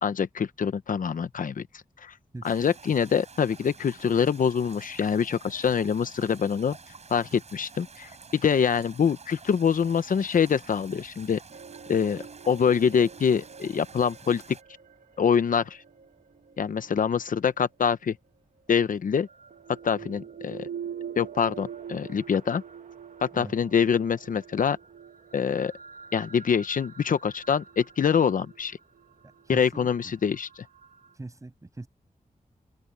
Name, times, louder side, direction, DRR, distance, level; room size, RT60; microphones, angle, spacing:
voice 1, 0.0-1.7 2.0-2.1 2.4-6.8 7.1-11.4 11.9-14.4 15.2-15.8 16.6-18.2 18.7-19.3 19.8-20.7 21.2-22.6 23.2-24.8 25.3-25.7 26.1-28.8 29.5-30.6, left 7 dB, 75° left, 0.8 m, -25 dB
voice 2, 2.3-2.7 20.2-20.3 23.3-23.5 29.5-30.1 31.2-31.9, right 2 dB, 20° right, 7.7 m, -42 dB
sound 1, 2.4-14.6, right 5 dB, 50° right, 6.2 m, -49 dB
sound 2, 11.5-17.5 18.7-31.1, right 7 dB, 70° right, 1.7 m, -45 dB
open air
wide cardioid pair, 155°, 14 cm